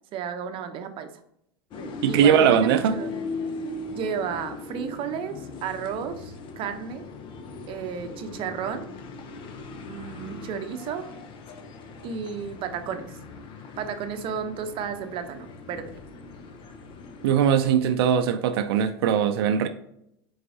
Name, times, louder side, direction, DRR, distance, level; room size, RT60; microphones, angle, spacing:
voice 1, 0.1-1.1 2.1-3.1 3.9-7.1 7.7-8.8 9.9-11.1 12.0-13.1 13.8-15.9, right 7 dB, 45° right, 0.7 m, -33 dB
sound 1, 1.7-17.7, left 3 dB, 40° left, 0.7 m, -39 dB
voice 2, 2.0-3.0 17.2-19.7, right 8 dB, 80° right, 0.4 m, -20 dB
4.5 x 4.0 x 2.7 m
supercardioid pair, 120°, 13 cm